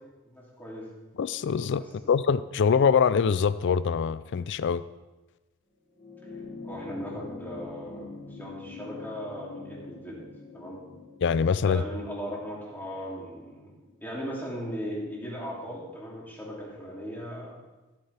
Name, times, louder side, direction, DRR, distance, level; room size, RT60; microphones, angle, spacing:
voice 1, 0.2-0.9 6.6-10.2 10.5-10.8 11.6-13.7 14.0-17.6, equal, 10° left, -5 dB, 2.8 m, -38 dB
voice 2, 1.2-1.8 2.1-4.8 11.2-11.8, left 6 dB, 55° left, 16 dB, 0.4 m, -24 dB
sound 1, 5.9-14.6 15.8-15.9, left 4 dB, 30° left, 3.1 m, -45 dB
14.5 x 8.7 x 3.4 m, 1.1 s
head